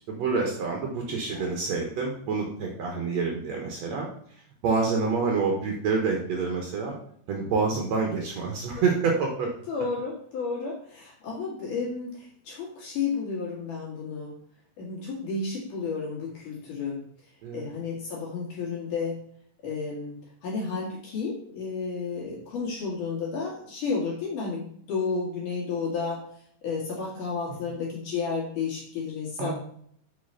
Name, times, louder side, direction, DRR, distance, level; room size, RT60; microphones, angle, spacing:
voice 1, 0.1-4.1 4.6-6.9 7.3-9.5 17.4-17.6 29.4-29.5, right 4 dB, 75° right, 1 dB, 1.5 m, -27 dB
voice 2, 9.7-14.3 14.8-17.0 17.5-19.2 19.6-20.1 20.4-26.2 26.6-29.5, left 4 dB, 55° left, -4 dB, 3.3 m, -32 dB
8.4 x 5.0 x 5.6 m, 0.63 s
omnidirectional pair, 4.8 m